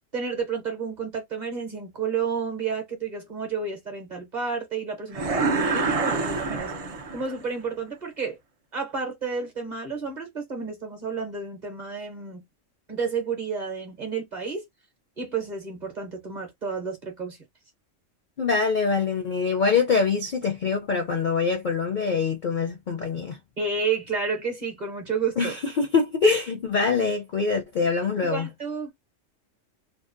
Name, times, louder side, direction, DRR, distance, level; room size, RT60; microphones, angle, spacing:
voice 1, 0.1-6.7 7.1-8.4 8.7-12.4 12.9-14.7 15.2-17.4 23.6-25.6 28.2-28.9, right 5 dB, 40° right, 0.8 m, -31 dB
sound 1, 5.1-7.5, right 3 dB, 65° right, 0.3 m, -26 dB
voice 2, 18.4-23.4 25.4-28.5, left 5 dB, 60° left, 0.5 m, -24 dB
2.7 x 2.0 x 2.4 m
omnidirectional pair, 1.3 m